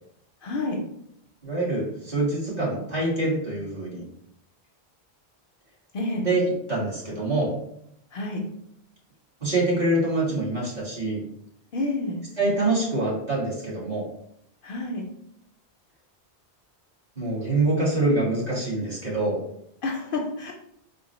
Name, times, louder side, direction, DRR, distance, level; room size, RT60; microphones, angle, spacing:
voice 1, 0.4-0.8 5.9-6.3 8.1-8.4 11.7-12.2 14.6-15.1 19.8-20.5, left 2 dB, 60° left, 1 dB, 0.7 m, -29 dB
voice 2, 1.4-4.0 6.2-7.5 9.4-11.2 12.4-14.1 17.1-19.4, right 2 dB, 40° right, -7 dB, 1.6 m, -25 dB
3.8 x 2.0 x 4.0 m, 0.74 s
omnidirectional pair, 1.1 m